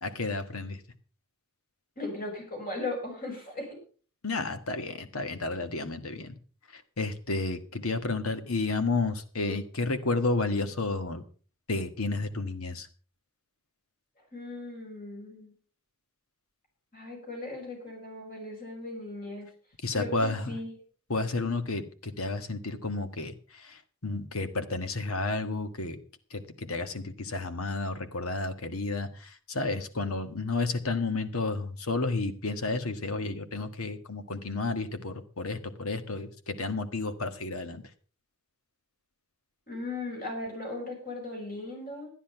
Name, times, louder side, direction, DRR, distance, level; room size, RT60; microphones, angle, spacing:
voice 1, 0.0-0.8 4.2-6.3 6.7-11.2 11.7-12.9 19.8-20.5 21.1-26.0 26.3-37.8, left 3 dB, 85° left, 9 dB, 1.5 m, -31 dB
voice 2, 2.0-3.8 14.3-15.5 16.9-19.5 19.9-20.7 39.7-42.1, left 2 dB, 45° left, 0 dB, 5.9 m, -37 dB
13.0 x 10.0 x 5.7 m, 0.40 s
head